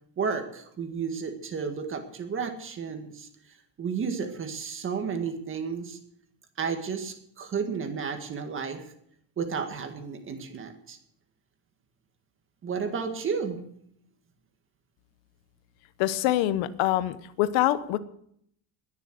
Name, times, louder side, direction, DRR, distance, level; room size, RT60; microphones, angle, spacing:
voice 1, 0.2-3.3 3.8-6.0 6.6-8.8 9.4-11.0 12.6-13.6, right 6 dB, 25° right, 6 dB, 1.9 m, -32 dB
voice 2, 16.0-18.0, left 14 dB, 90° left, 14 dB, 1.1 m, -25 dB
21.0 x 7.0 x 8.0 m, 0.71 s
cardioid pair, 175°, 45 cm